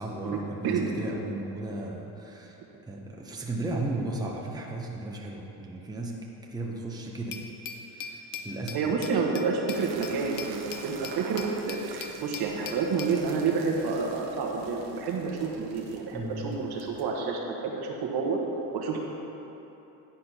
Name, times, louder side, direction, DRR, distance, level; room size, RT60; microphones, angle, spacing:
voice 1, 0.0-2.6 2.9-6.2 6.5-7.3 7.8-9.0 16.1-16.5, right 2 dB, 10° right, -2 dB, 1.0 m, -35 dB
Glass, 7.3-13.2, left 5 dB, 45° left, 0.8 m, -41 dB
voice 2, 8.7-18.4 18.7-19.0, right 5 dB, 55° right, 0 dB, 1.4 m, -29 dB
sound 1, 9.7-17.0, right 5 dB, 80° right, 1.0 m, -46 dB
10.0 x 4.3 x 5.5 m, 3.0 s
supercardioid pair, 80°, 45 cm